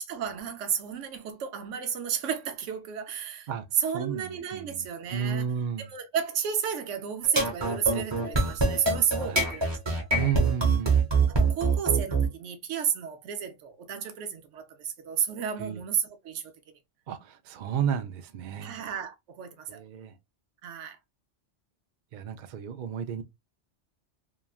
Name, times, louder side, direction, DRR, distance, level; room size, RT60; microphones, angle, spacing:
voice 1, 0.0-3.5 3.8-5.4 5.9-10.1 11.3-16.5 18.6-19.8 20.6-21.0, right 8 dB, 80° right, 1.0 m, -32 dB
voice 2, 3.9-5.9 9.2-9.4 10.1-11.0 15.6-15.8 17.1-18.8 19.7-20.1 22.1-23.2, right 8 dB, 60° right, 0.5 m, -32 dB
sound 1, 7.2-12.3, right 3 dB, 25° right, 0.9 m, -24 dB
3.0 x 2.3 x 2.3 m
omnidirectional pair, 1.2 m